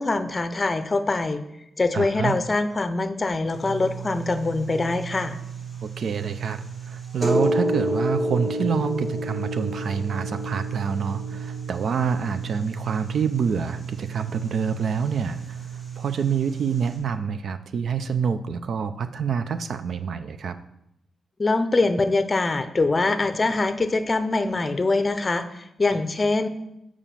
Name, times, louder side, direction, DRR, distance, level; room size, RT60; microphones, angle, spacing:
voice 1, 0.0-1.4 1.8-5.4 21.4-26.5, left 3 dB, 30° left, 10 dB, 0.6 m, -23 dB
voice 2, 1.9-2.3 5.8-15.7 16.0-20.6, right 6 dB, 65° right, 11 dB, 0.5 m, -27 dB
sound 1, 3.5-17.0, right 2 dB, 45° right, 3.5 m, -31 dB
7.1 x 4.9 x 5.8 m, 0.84 s
cardioid pair, 105°, 0 cm